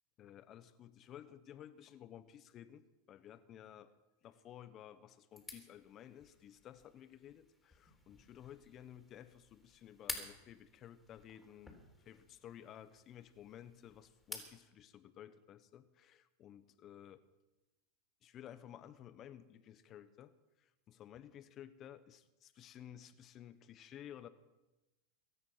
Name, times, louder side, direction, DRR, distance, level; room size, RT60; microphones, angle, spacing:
voice 1, 0.2-3.9 4.2-17.2 18.2-24.3, left 10 dB, 40° left, 13 dB, 1.1 m, -55 dB
sound 1, 5.3-14.6, left 2 dB, 10° left, 3.7 m, -52 dB
23.0 x 9.9 x 5.8 m, 1.0 s
hypercardioid pair, 110°, 0 cm